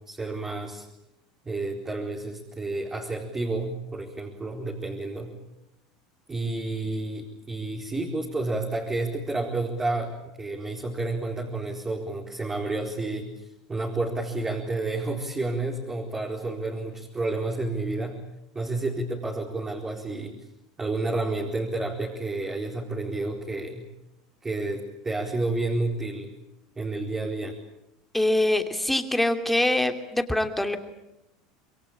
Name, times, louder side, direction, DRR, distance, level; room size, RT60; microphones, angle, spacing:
voice 1, 0.1-0.8 1.4-5.3 6.3-13.3 13.7-18.2 18.5-20.3 20.8-23.8 24.4-26.3 26.8-27.5, right 2 dB, 20° right, -1 dB, 4.3 m, -30 dB
voice 2, 28.1-30.8, left 1 dB, 5° left, 6 dB, 2.9 m, -24 dB
27.0 x 22.5 x 8.7 m, 0.88 s
hypercardioid pair, 90°, 3 cm